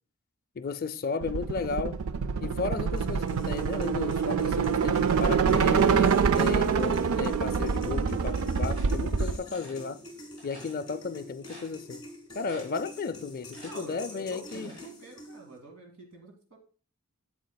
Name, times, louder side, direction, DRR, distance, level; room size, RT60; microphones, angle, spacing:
voice 1, 0.6-2.0 2.4-10.0 10.4-12.1 12.3-14.7, left 4 dB, 40° left, 0.4 m, -34 dB
sound 1, 1.2-9.4, right 6 dB, 70° right, 0.4 m, -26 dB
sound 2, 3.0-15.6, left 1 dB, 20° left, 1.5 m, -47 dB
sound 3, 8.2-9.8 10.4-10.7 11.1-11.2 11.4-12.1 12.4-12.9 13.2-14.9, equal, 25° right, 4.4 m, -50 dB
voice 2, 13.6-16.6, right 3 dB, 90° right, 2.3 m, -47 dB
9.4 x 7.5 x 2.2 m
head